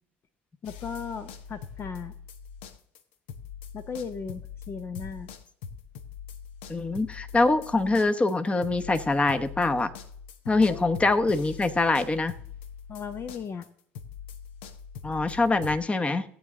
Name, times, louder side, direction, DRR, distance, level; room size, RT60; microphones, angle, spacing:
sound 1, 0.6-3.0 3.3-15.8, left 7 dB, 75° left, 0.9 m, -43 dB
voice 1, 0.6-2.2 3.7-5.3 10.7-10.9 12.9-13.7, left 6 dB, 40° left, 11 dB, 0.7 m, -36 dB
voice 2, 6.7-9.9 10.5-12.3 15.0-16.2, left 3 dB, 20° left, 9 dB, 1.1 m, -24 dB
16.5 x 8.7 x 3.8 m, 0.64 s
hypercardioid pair, 65°, 6 cm